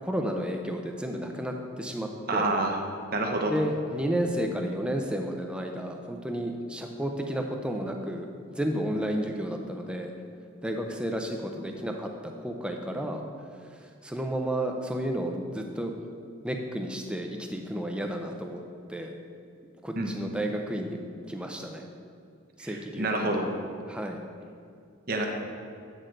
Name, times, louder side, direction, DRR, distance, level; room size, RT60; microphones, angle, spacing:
voice 1, 0.0-2.5 3.5-8.3 8.5-10.1 10.6-12.1 12.4-13.3 13.6-15.9 16.4-18.6 18.9-19.1 19.8-21.0 21.3-21.8 22.6-23.2 23.9-24.2, equal, 5° right, 3 dB, 0.5 m, -32 dB
voice 2, 2.3-2.8 3.1-3.5 20.0-20.1 22.6-23.5 25.1-25.3, right 2 dB, 45° right, 1 dB, 0.8 m, -27 dB
8.8 x 6.4 x 3.8 m, 2.4 s
head